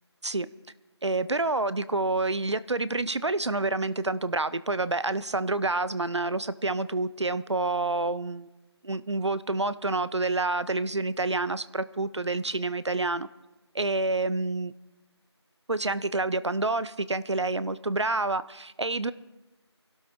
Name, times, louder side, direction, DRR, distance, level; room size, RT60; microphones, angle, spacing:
voice 1, 1.0-8.5 8.8-13.3 13.7-14.7 15.7-19.1, right 2 dB, 75° right, 15 dB, 0.7 m, -28 dB
26.5 x 12.5 x 2.8 m, 1.1 s
figure-of-eight pair, 175°, 15 cm